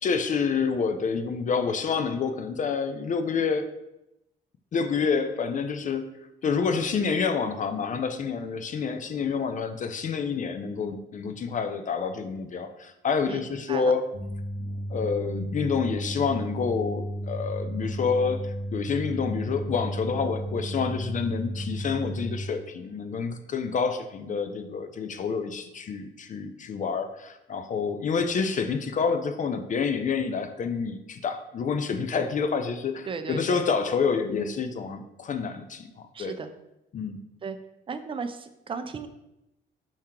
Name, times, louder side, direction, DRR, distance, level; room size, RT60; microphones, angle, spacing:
voice 1, 0.0-3.7 4.7-6.1 6.4-14.1 14.9-36.4 36.9-37.2, left 5 dB, 40° left, 8 dB, 0.4 m, -28 dB
voice 2, 13.3-13.9 33.1-33.6 36.1-36.5 37.4-37.6 37.9-39.1, right 5 dB, 25° right, 9 dB, 0.4 m, -35 dB
sound 1, 14.1-22.5, equal, 85° left, 1.4 m, -33 dB
4.5 x 2.8 x 3.6 m, 0.89 s
cardioid pair, 90°, 20 cm